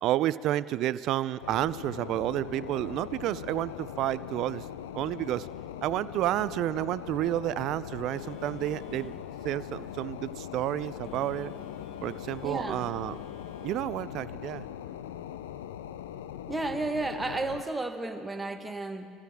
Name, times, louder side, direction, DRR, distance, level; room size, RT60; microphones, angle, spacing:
voice 1, 0.0-4.7 4.9-5.5 5.8-9.2 9.4-11.5 12.0-13.2 13.6-14.7, right 13 dB, 65° right, 17 dB, 0.4 m, -30 dB
sound 1, 1.4-17.6, left 10 dB, 90° left, 0.4 m, -41 dB
Telephone, 8.1-13.7, left 8 dB, 55° left, 1.6 m, -52 dB
voice 2, 12.4-12.9 16.5-19.1, right 2 dB, 15° right, 6 dB, 1.3 m, -32 dB
24.0 x 14.5 x 3.5 m, 2.2 s
hypercardioid pair, 75°, 0 cm